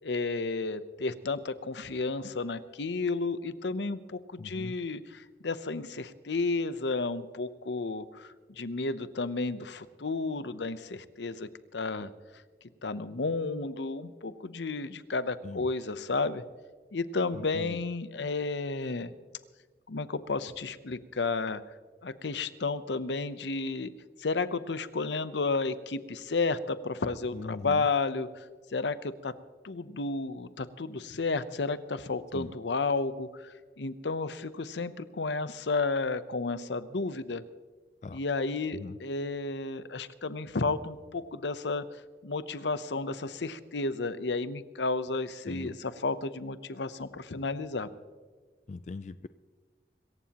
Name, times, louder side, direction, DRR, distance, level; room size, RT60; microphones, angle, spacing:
voice 1, 0.0-12.1 12.8-16.4 16.9-19.1 19.9-21.6 22.0-23.9 24.2-28.4 28.7-29.3 29.6-37.4 38.1-41.9 42.2-47.9, left 3 dB, 90° left, 14 dB, 0.8 m, -32 dB
voice 2, 4.4-4.7 15.4-15.7 17.3-17.8 27.3-27.9 32.3-32.5 38.0-38.2 38.7-39.0 45.5-45.8 48.7-49.3, left 3 dB, 40° left, 14 dB, 0.3 m, -40 dB
25.5 x 14.5 x 3.0 m, 1.4 s
head